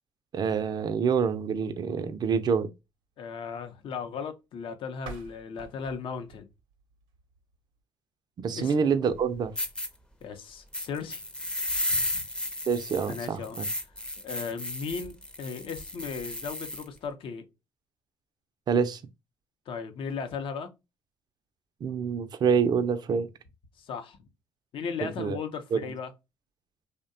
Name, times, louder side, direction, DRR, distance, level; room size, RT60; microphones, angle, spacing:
voice 1, 0.3-2.7 8.4-9.5 12.7-13.7 18.7-19.0 21.8-23.3 25.0-25.4 25.7-25.9, right 6 dB, 45° right, 0.4 m, -26 dB
voice 2, 3.2-6.5 8.5-8.7 10.2-11.2 12.0-12.2 13.1-13.6 14.2-17.5 19.7-20.7 23.8-24.3 24.7-26.1, left 6 dB, 60° left, 0.6 m, -36 dB
sound 1, 4.9-7.8, right 6 dB, 90° right, 0.6 m, -48 dB
sound 2, 9.1-9.2 9.6-9.9 10.7-16.9, left 1 dB, 10° left, 0.5 m, -33 dB
2.7 x 2.1 x 2.5 m
supercardioid pair, 80°, 10 cm